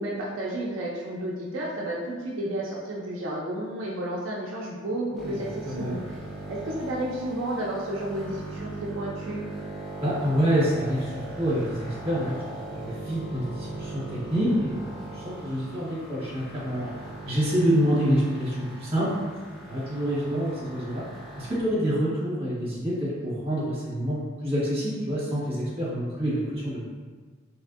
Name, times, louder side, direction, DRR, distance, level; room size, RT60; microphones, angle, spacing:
voice 1, 0.0-6.2 6.5-9.4, right 1 dB, 80° right, -4 dB, 0.4 m, -32 dB
sound 1, 5.1-21.6, right 2 dB, ahead, 0.6 m, -39 dB
voice 2, 5.6-6.0 10.0-12.4 12.7-14.0 14.3-16.9 17.2-19.1 19.7-21.0 21.4-26.8, equal, 30° right, -8 dB, 1.0 m, -27 dB
2.9 x 2.5 x 2.4 m, 1.5 s
head